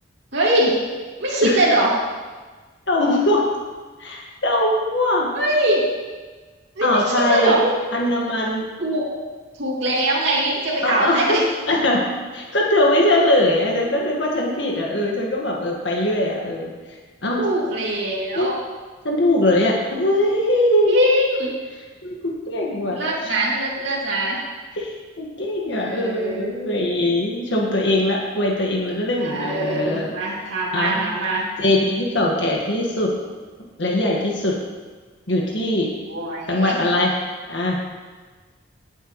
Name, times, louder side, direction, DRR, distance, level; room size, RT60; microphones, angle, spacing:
voice 1, 0.3-0.8 1.2-1.9 5.3-5.8 6.7-7.7 8.8-9.0 9.6-11.4 17.4-18.6 20.9-21.6 22.9-24.4 25.7-26.5 29.2-31.5 36.1-36.8, right 1 dB, 65° right, -6 dB, 2.6 m, -22 dB
voice 2, 2.9-3.5 4.0-5.3 6.8-7.6 7.9-8.7 10.8-11.4 11.7-12.0 12.3-17.4 18.3-18.5 19.0-20.9 22.0-23.3 24.8-30.1 30.7-31.0 31.6-33.1 33.8-34.5 35.3-35.9 36.5-37.1 37.5-37.8, left 1 dB, 65° left, -2 dB, 1.7 m, -21 dB
18.0 x 8.2 x 3.1 m, 1.4 s
head